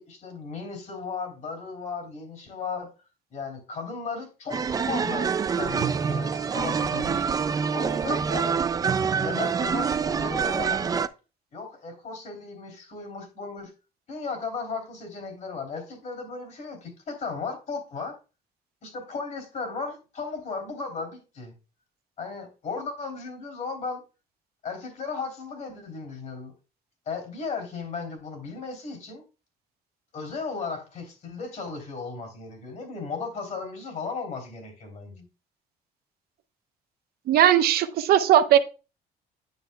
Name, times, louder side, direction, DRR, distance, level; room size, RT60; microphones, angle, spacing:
voice 1, 0.0-2.9 3.3-7.3 7.7-8.6 9.2-11.1 11.5-13.7 14.1-18.2 18.8-21.5 22.2-24.0 24.6-26.5 27.1-29.2 30.1-35.2, left 4 dB, 45° left, 2.9 m, -35 dB
sound 1, 4.5-11.1, right 6 dB, 20° right, 0.3 m, -26 dB
voice 2, 37.3-38.6, right 11 dB, 70° right, 0.8 m, -18 dB
9.6 x 6.6 x 2.2 m
cardioid pair, 130°, 17 cm